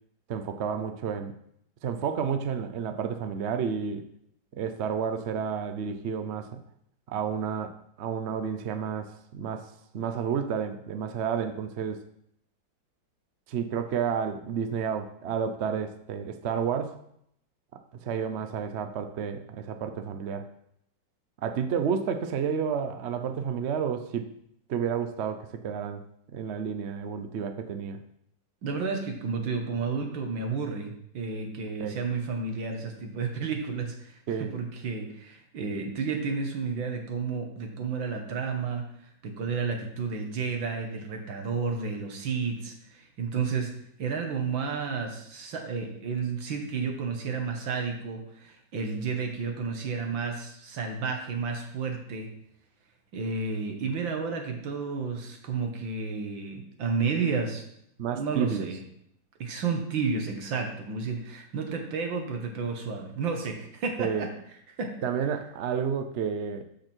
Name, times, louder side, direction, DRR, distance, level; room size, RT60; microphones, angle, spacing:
voice 1, 0.3-1.3 1.8-4.0 4.6-6.6 7.1-12.0 13.5-17.0 18.0-20.5 21.4-24.3 24.7-26.0 26.3-28.0 31.8-32.0 34.3-34.5 58.0-58.7 64.0-64.3 65.0-66.6, right 7 dB, 70° right, 8 dB, 0.6 m, -31 dB
voice 2, 28.6-38.9 39.2-52.3 53.1-57.6 58.1-58.8 59.4-64.3 64.7-65.0, right 5 dB, 90° right, 3 dB, 2.2 m, -31 dB
13.0 x 5.2 x 4.5 m, 0.72 s
omnidirectional pair, 2.0 m